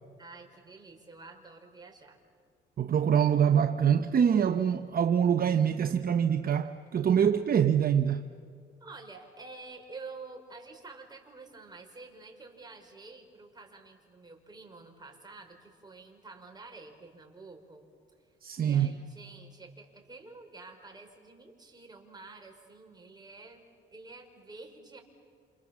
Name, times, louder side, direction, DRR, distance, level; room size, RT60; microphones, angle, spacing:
voice 1, 0.2-2.2 8.8-17.9 18.6-23.6 23.9-25.0, right 3 dB, 20° right, 5.3 m, -49 dB
voice 2, 2.8-8.2 18.4-19.0, right 8 dB, 50° right, 1.0 m, -25 dB
28.5 x 28.0 x 7.3 m
cardioid pair, 90°, 20 cm